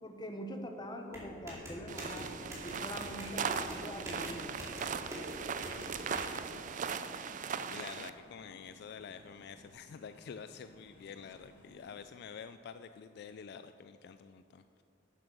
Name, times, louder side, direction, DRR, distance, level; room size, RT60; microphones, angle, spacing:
voice 1, 0.0-2.3 2.6-4.6, left 1 dB, 25° left, 4 dB, 1.0 m, -43 dB
sound 1, 1.1-6.3, equal, 15° right, 2.4 m, -45 dB
sound 2, 1.9-8.1, right 6 dB, 45° right, 0.4 m, -39 dB
sound 3, 2.0-12.0, left 1 dB, 85° left, 1.4 m, -60 dB
voice 2, 5.8-6.6 7.1-7.4 7.7-14.8, left 6 dB, 60° left, 10 dB, 0.3 m, -49 dB
10.0 x 7.6 x 6.0 m, 2.7 s
head